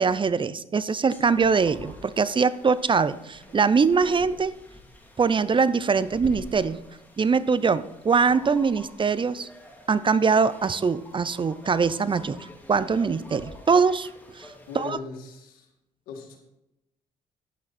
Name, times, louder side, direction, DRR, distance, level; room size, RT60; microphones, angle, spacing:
voice 1, 0.0-4.5 5.2-6.8 7.2-9.5 9.9-12.4 12.7-14.1 14.3-14.5 14.8-15.0, right 5 dB, 35° right, 16 dB, 0.6 m, -22 dB
sound 1, 1.1-14.9, left 1 dB, 10° left, 2.7 m, -47 dB
voice 2, 14.7-15.7 16.1-16.4, left 5 dB, 85° left, 2 dB, 2.0 m, -39 dB
11.0 x 8.6 x 4.2 m, 0.90 s
supercardioid pair, 55°, 15 cm